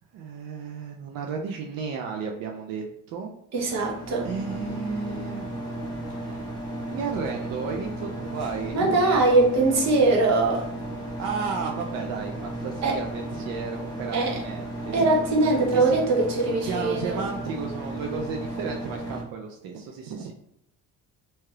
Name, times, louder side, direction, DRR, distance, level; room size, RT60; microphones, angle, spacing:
voice 1, 0.1-3.3 3.6-3.9 4.2-5.5 6.1-9.0 11.2-15.2 15.7-16.0 16.5-20.3, right 5 dB, 85° right, 1 dB, 0.5 m, -33 dB
voice 2, 3.5-4.3 8.7-10.7 12.8-13.0 14.1-14.4 14.9-17.2, right 2 dB, 50° right, -2 dB, 0.9 m, -22 dB
sound 1, 3.6-19.2, right 1 dB, 10° left, 0.7 m, -34 dB
3.2 x 2.8 x 2.3 m, 0.71 s
cardioid pair, 165°, 34 cm